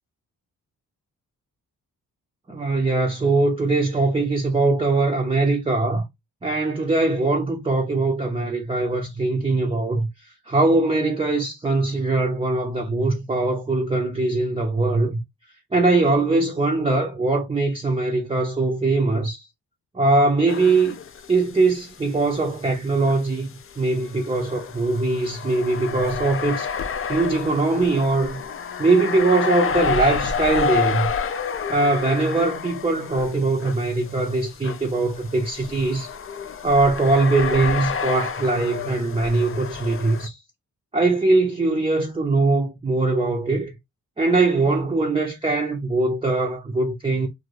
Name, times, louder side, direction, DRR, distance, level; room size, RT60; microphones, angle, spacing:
voice 1, 2.5-6.0 6.4-10.1 10.5-15.2 15.7-19.5 19.9-21.0 21.3-23.5 23.8-26.7 27.1-28.4 28.8-31.1 31.7-36.1 36.6-40.4 40.9-43.7 44.2-47.3, right 3 dB, 15° right, 0.6 m, -21 dB
sound 1, 20.5-21.6 21.9-22.0 23.0-40.3, left 6 dB, 35° left, 0.4 m, -30 dB
2.5 x 2.2 x 3.1 m
supercardioid pair, 40°, 39 cm